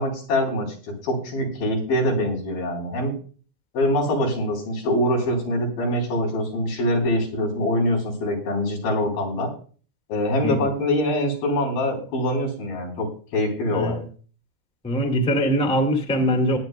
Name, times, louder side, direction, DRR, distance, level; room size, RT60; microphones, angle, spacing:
voice 1, 0.0-3.1 3.7-9.5 10.1-14.0, left 1 dB, 65° left, -1 dB, 5.5 m, -24 dB
voice 2, 13.7-14.0 14.8-16.6, equal, 5° left, 2 dB, 0.4 m, -22 dB
20.0 x 10.0 x 2.2 m, 0.39 s
omnidirectional pair, 4.7 m